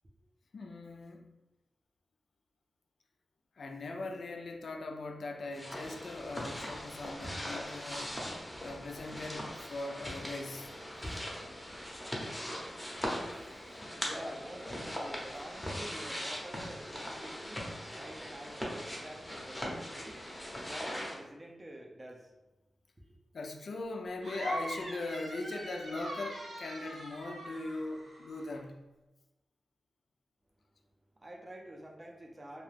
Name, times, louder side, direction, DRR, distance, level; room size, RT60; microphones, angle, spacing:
voice 1, 0.5-1.3 3.6-8.2 8.6-10.7 23.3-28.9, left 2 dB, 70° left, 4 dB, 0.4 m, -40 dB
sound 1, 5.5-21.2, equal, 15° left, 0.7 m, -40 dB
voice 2, 14.0-20.2 20.6-22.3 23.0-23.2 31.2-32.6, right 1 dB, 25° right, 1 dB, 0.5 m, -48 dB
sound 2, 24.2-28.6, right 1 dB, 85° right, 0.7 m, -43 dB
2.3 x 2.2 x 3.2 m, 1.0 s
cardioid pair, 75°, 0 cm